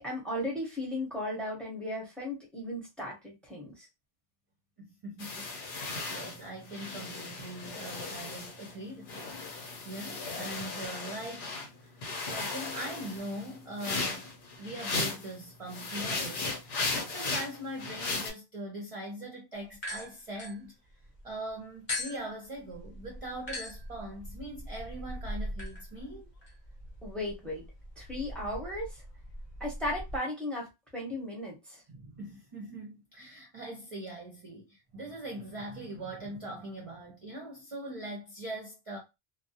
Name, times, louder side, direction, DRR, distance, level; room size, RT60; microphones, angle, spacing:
voice 1, 0.0-3.9 27.0-27.6 28.0-29.0 29.6-30.7 30.9-31.8, left 1 dB, ahead, 0.8 m, -36 dB
voice 2, 4.8-9.3 9.8-11.5 11.8-12.0 12.2-14.3 14.6-20.7 21.2-26.3 31.9-39.0, right 1 dB, 40° right, 0.5 m, -41 dB
sound 1, 5.2-8.8 9.1-11.7 12.0-15.3 15.7-18.3, left 3 dB, 75° left, 0.9 m, -36 dB
sound 2, 19.7-21.2 21.9-30.2, left 1 dB, 40° left, 0.7 m, -41 dB
2.2 x 2.0 x 2.7 m
omnidirectional pair, 1.1 m